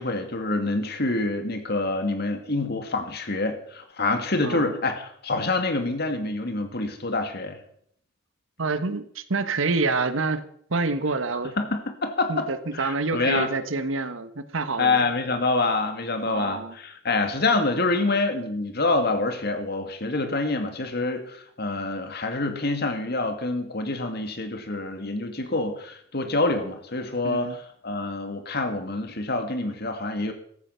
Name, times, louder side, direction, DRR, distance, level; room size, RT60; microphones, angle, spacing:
voice 1, 0.0-7.6 11.6-12.5 12.7-13.5 14.8-27.6 27.8-30.3, left 3 dB, 55° left, 6 dB, 2.1 m, -26 dB
voice 2, 8.6-10.4 10.7-11.6 12.3-15.0 16.3-16.8 27.2-27.6, right 3 dB, 80° right, 11 dB, 1.2 m, -27 dB
14.5 x 12.5 x 5.7 m, 0.65 s
head